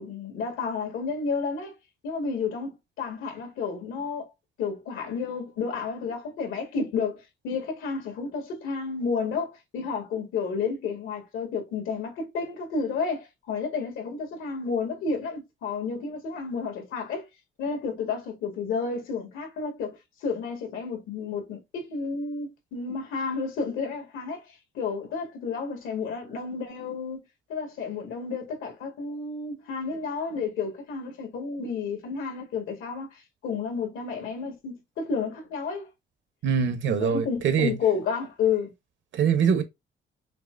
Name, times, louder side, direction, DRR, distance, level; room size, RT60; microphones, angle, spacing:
voice 1, 0.0-1.7 2.0-4.3 4.6-17.3 17.6-27.2 27.5-35.9 37.0-38.7, left 5 dB, 90° left, 1.7 m, -31 dB
voice 2, 36.4-37.8 39.1-39.6, right 7 dB, 70° right, 1.0 m, -23 dB
5.8 x 2.2 x 2.5 m
cardioid pair, 90°, 20 cm